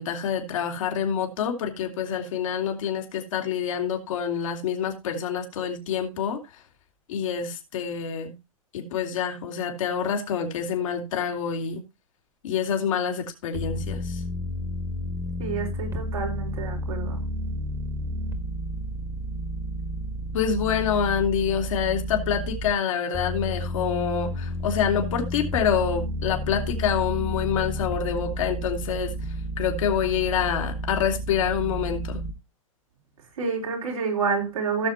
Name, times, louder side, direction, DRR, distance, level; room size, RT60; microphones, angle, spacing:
voice 1, 0.0-6.4 7.1-8.3 8.7-11.8 12.4-14.2 20.3-29.1 29.6-32.2, left 7 dB, 65° left, 2.6 m, -27 dB
sound 1, 13.5-22.7 23.1-32.3, equal, 15° right, 1.7 m, -31 dB
voice 2, 15.4-17.2 33.4-34.9, right 5 dB, 80° right, 4.5 m, -28 dB
17.0 x 6.8 x 2.8 m
hypercardioid pair, 105°, 18 cm